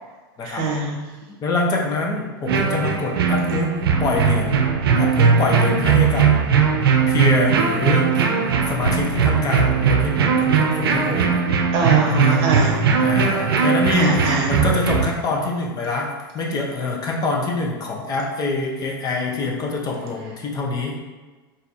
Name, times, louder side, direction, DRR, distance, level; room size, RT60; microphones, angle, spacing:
voice 1, 0.4-1.0 11.7-12.8 13.9-14.5, right 2 dB, 50° right, 0 dB, 0.9 m, -22 dB
voice 2, 1.4-3.7 4.0-4.6 5.0-6.4 7.1-8.1 8.7-11.4 12.1-12.4 13.0-21.0, left 3 dB, 30° left, -1 dB, 0.9 m, -25 dB
sound 1, 2.5-15.1, right 6 dB, 80° right, 0.5 m, -19 dB
3.4 x 2.7 x 4.1 m, 1.3 s
hypercardioid pair, 95°, 12 cm